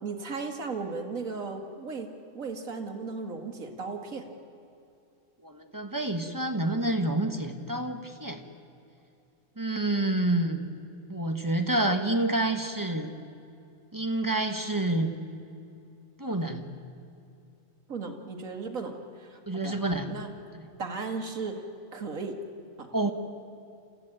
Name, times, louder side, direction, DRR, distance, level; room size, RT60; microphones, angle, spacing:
voice 1, 0.0-4.3 11.8-12.0 17.9-19.7 20.1-20.3 20.8-21.6 21.9-22.4 22.8-23.1, right 4 dB, 65° right, 3 dB, 2.3 m, -36 dB
voice 2, 5.4-8.4 9.6-10.7 11.1-13.1 13.9-15.2 16.2-16.6 19.5-20.1 20.5-20.6 22.9-23.1, right 2 dB, 15° right, 5 dB, 1.2 m, -28 dB
28.0 x 15.0 x 9.0 m, 2.6 s
omnidirectional pair, 1.5 m